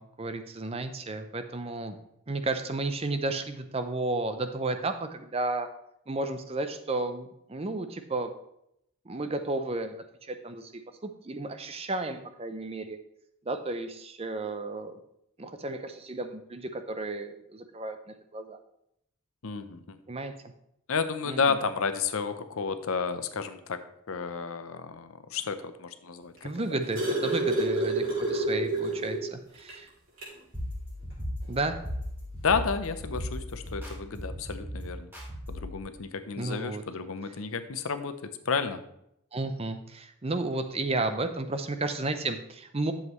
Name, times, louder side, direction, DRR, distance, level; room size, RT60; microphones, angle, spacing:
voice 1, 0.0-2.0 2.3-5.7 6.1-8.3 9.1-13.0 13.5-15.0 15.4-18.0 18.3-18.6 20.1-20.3 21.3-21.6 26.4-29.9 31.5-31.8 36.4-36.8 39.3-42.9, right 2 dB, 25° right, 8 dB, 0.6 m, -33 dB
voice 2, 19.4-20.0 20.9-23.8 24.1-26.5 32.4-35.1 35.5-38.8, left 5 dB, 70° left, 10 dB, 0.7 m, -31 dB
sound 1, 26.4-29.3 29.7-29.8 30.2-30.4 31.5-31.6, right 2 dB, 60° right, 3.4 m, -28 dB
sound 2, 30.5-35.8, left 1 dB, 10° right, 2.5 m, -37 dB
11.0 x 7.3 x 3.1 m, 0.77 s
head